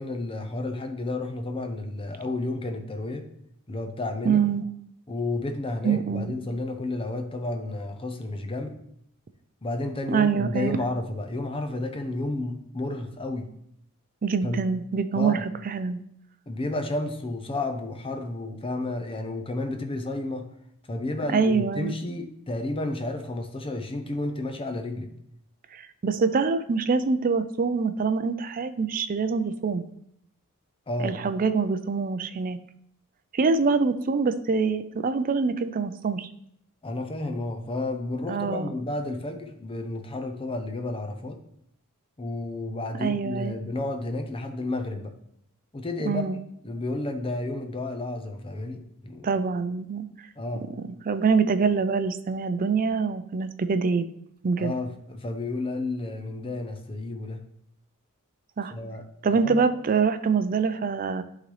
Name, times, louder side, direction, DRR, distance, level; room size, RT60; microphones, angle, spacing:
voice 1, 0.0-3.3 3.7-4.4 5.1-8.7 9.6-13.5 14.4-14.6 15.1-15.5 16.5-20.5 20.9-25.1 30.9-31.2 36.8-41.4 42.2-45.1 45.7-46.2 46.6-49.4 50.4-50.7 54.6-57.4 58.7-59.0 59.4-59.7, left 2 dB, 25° left, 6 dB, 0.7 m, -31 dB
voice 2, 4.2-4.7 5.8-6.3 10.1-10.8 14.2-16.0 21.3-21.9 25.7-29.8 31.0-32.6 33.3-36.3 38.3-38.7 43.0-43.5 46.1-46.4 49.2-50.3 50.8-54.1 54.4-54.7 58.6-58.7 59.2-61.2, right 5 dB, 40° right, 11 dB, 0.4 m, -25 dB
11.5 x 3.9 x 3.2 m, 0.72 s
head